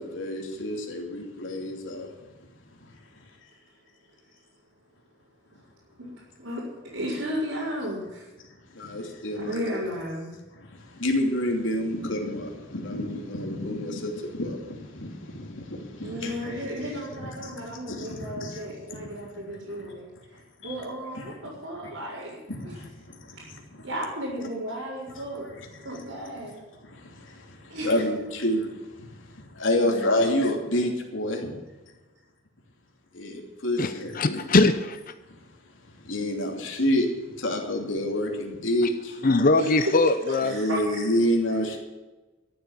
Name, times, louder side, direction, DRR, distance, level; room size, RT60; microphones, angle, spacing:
voice 1, 0.0-2.1 8.7-9.6 10.5-16.5 17.2-19.3 19.7-19.9 20.6-20.8 21.1-21.3 22.5-23.4 25.8-25.9 26.8-31.5 33.1-34.4 36.0-39.2 40.4-41.8, left 1 dB, 70° left, 1 dB, 3.0 m, -29 dB
voice 2, 6.0-6.6 6.9-8.3 9.4-10.3 16.0-20.1 20.6-22.7 23.4-23.5 23.8-25.5 25.8-26.6 27.7-28.0 29.8-30.1 39.6-41.1, equal, 80° right, -8 dB, 4.8 m, -33 dB
voice 3, 33.8-35.0 39.2-40.5, left 2 dB, 45° left, 10 dB, 0.7 m, -21 dB
13.5 x 8.2 x 8.9 m, 1.2 s
head